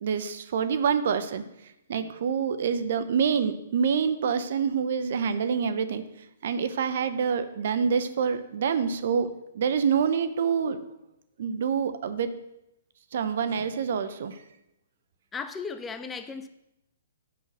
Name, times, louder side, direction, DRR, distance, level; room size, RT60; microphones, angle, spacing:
voice 1, 0.0-1.4 1.9-6.0 6.4-10.8 11.4-12.3 13.1-14.4, right 6 dB, 60° right, 11 dB, 0.8 m, -26 dB
voice 2, 15.3-16.5, left 5 dB, 15° left, 10 dB, 0.5 m, -36 dB
8.5 x 5.7 x 6.2 m, 0.85 s
hypercardioid pair, 125°, 0 cm